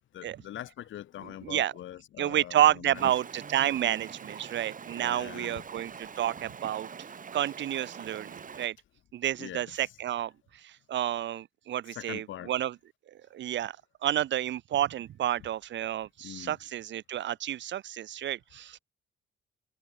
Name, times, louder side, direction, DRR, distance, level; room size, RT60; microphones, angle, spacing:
voice 1, 0.1-3.1 4.9-5.6 9.4-9.9 11.9-12.5 16.2-16.6, left 12 dB, 75° left, 2.6 m, -43 dB
voice 2, 1.4-1.7 2.2-6.9 7.3-8.8 9.1-12.7 13.3-13.8 14.0-18.8, right 12 dB, 65° right, 1.1 m, -30 dB
Stream, 2.9-8.7, right 6 dB, 40° right, 4.2 m, -44 dB
cardioid pair, 90°, 20 cm